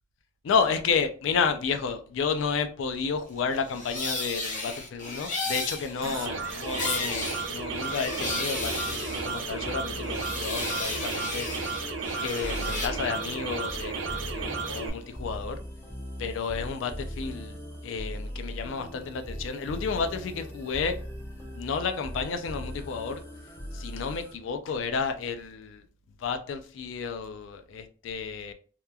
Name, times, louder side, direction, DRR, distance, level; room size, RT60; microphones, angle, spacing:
voice 1, 0.4-11.5 12.2-15.6 16.2-21.0 21.4-23.2 23.7-25.8 26.2-28.5, left 5 dB, 80° left, 0.3 m, -31 dB
sound 1, 3.5-9.7 10.0-12.9, left 2 dB, 40° left, 0.7 m, -34 dB
sound 2, 6.0-14.9, right 4 dB, 75° right, 0.4 m, -33 dB
sound 3, 8.1-24.3, equal, 10° left, 0.4 m, -40 dB
2.9 x 2.3 x 2.2 m
head